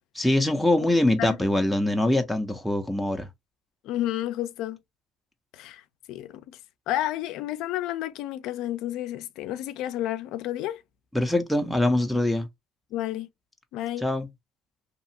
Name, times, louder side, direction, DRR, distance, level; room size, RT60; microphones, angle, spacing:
voice 1, 0.2-3.3 11.1-12.5 14.0-14.3, left 1 dB, ahead, 0.5 m, -23 dB
voice 2, 3.8-4.8 5.5-5.8 6.1-6.4 6.9-10.8 12.9-13.3 13.7-14.1, left 13 dB, 70° left, 0.4 m, -31 dB
2.8 x 2.4 x 2.6 m
cardioid pair, 105°, 0 cm